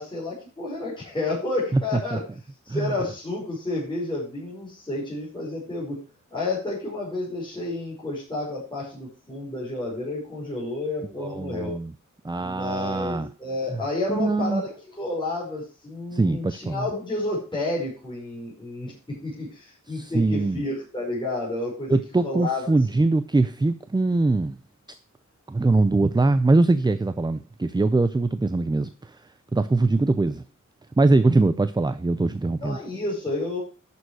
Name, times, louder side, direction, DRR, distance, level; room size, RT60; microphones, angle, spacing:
voice 1, 0.0-2.2 2.6-6.0 6.3-11.8 12.4-22.8 32.6-33.6, left 2 dB, 15° left, 5.2 m, -30 dB
voice 2, 11.2-11.9 12.2-13.3 13.7-13.8 14.1-14.6 16.1-16.8 19.9-20.6 21.9-24.6 25.5-29.1 29.5-30.4 31.0-32.8, right 2 dB, 15° right, 0.5 m, -22 dB
11.0 x 6.9 x 4.7 m
wide cardioid pair, 140°, 31 cm